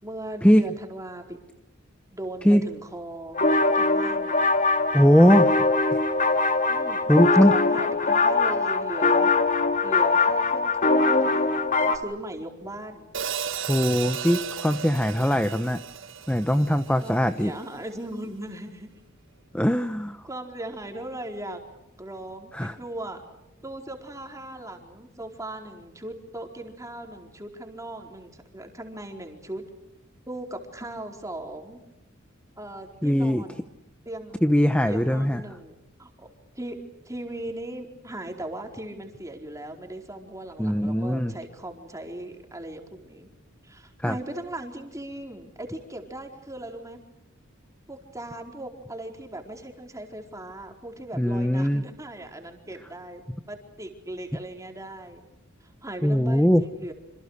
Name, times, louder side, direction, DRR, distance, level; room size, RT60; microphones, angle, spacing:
voice 1, 0.0-1.4 2.1-4.4 6.7-7.1 7.5-9.3 9.8-13.1 17.0-18.9 20.2-21.6 22.0-23.2 23.6-29.6 30.3-31.8 32.6-33.6 34.0-34.4 34.9-36.3 36.5-36.8 37.0-43.3 43.6-47.0 47.9-55.2 55.6-56.9, right 1 dB, 15° right, 3 dB, 4.5 m, -38 dB
sound 1, 3.3-12.0, left 3 dB, 40° left, 2.4 m, -22 dB
voice 2, 4.9-5.5 5.9-6.0 7.1-7.5 13.7-15.8 16.3-17.5 19.5-20.2 22.5-22.8 33.0-33.4 34.4-35.4 40.6-41.4 44.0-44.2 51.2-51.8 56.0-56.6, equal, 5° left, 9 dB, 0.9 m, -20 dB
Hi-hat, 13.1-17.4, right 8 dB, 65° right, 1.5 m, -34 dB
27.5 x 27.5 x 6.6 m, 0.91 s
head